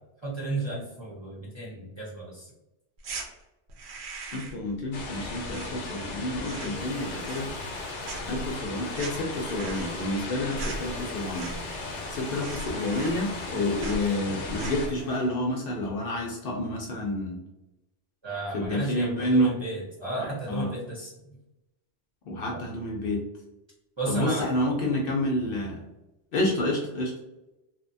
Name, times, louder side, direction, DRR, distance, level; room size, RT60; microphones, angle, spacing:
voice 1, 0.2-2.5 18.2-21.4 22.5-22.6 24.0-24.5, right 2 dB, 30° right, -6 dB, 0.7 m, -33 dB
sound 1, 3.0-3.3 3.7-4.7 4.9-6.1 6.4-6.9 7.2-11.8 12.1-12.2 12.4-13.5 13.8-14.1 14.5-14.9, right 2 dB, 75° right, 0.8 m, -39 dB
voice 2, 4.3-7.5 8.3-11.5 12.1-17.4 18.5-19.6 20.5-20.7 22.3-23.2 24.1-25.8 26.3-27.2, left 1 dB, 60° left, -1 dB, 0.7 m, -29 dB
sound 2, 4.9-14.9, left 3 dB, 85° left, 0.9 m, -37 dB
sound 3, 6.6-15.3, left 1 dB, ahead, 0.8 m, -44 dB
2.8 x 2.1 x 2.6 m, 0.95 s
omnidirectional pair, 1.1 m